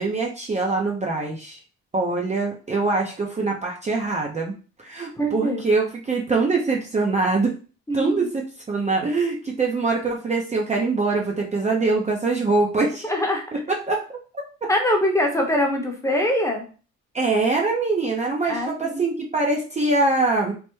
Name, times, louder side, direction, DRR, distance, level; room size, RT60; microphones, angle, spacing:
voice 1, 0.0-1.6 1.9-4.5 4.8-7.5 7.9-13.1 13.5-14.7 17.1-20.5, right 3 dB, 25° right, -1 dB, 0.5 m, -23 dB
voice 2, 5.2-5.6 7.9-8.1 13.0-13.4 14.7-16.7 18.4-19.0, left 1 dB, 10° left, 1 dB, 0.7 m, -23 dB
3.3 x 2.1 x 3.0 m, 0.37 s
cardioid pair, 90°, 30 cm